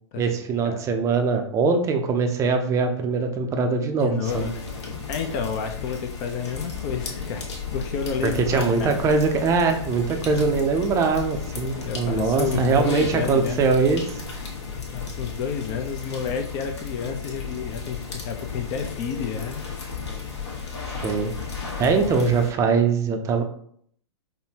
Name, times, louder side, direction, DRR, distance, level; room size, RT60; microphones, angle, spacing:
voice 1, 0.2-4.5 8.4-14.2 21.0-21.3 21.8-23.4, right 4 dB, 20° right, 5 dB, 0.5 m, -22 dB
voice 2, 4.0-4.6 5.1-7.4 7.7-9.0 11.8-13.6 14.9-19.7, left 6 dB, 35° left, 6 dB, 0.5 m, -30 dB
sound 1, 4.2-22.5, left 5 dB, 65° left, 1.2 m, -34 dB
5.3 x 2.1 x 2.8 m, 0.64 s
hypercardioid pair, 120°, 15 cm